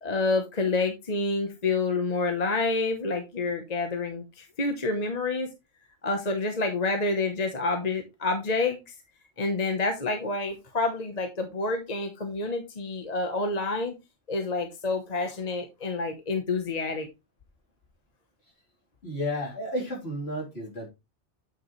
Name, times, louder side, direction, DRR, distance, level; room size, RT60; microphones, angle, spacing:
voice 1, 0.0-5.5 6.0-8.9 9.4-14.0 14.3-17.1, left 3 dB, 35° left, 1.1 m, -28 dB
voice 2, 19.0-20.9, left 1 dB, 60° left, 3.7 m, -32 dB
9.0 x 5.1 x 3.1 m
omnidirectional pair, 1.2 m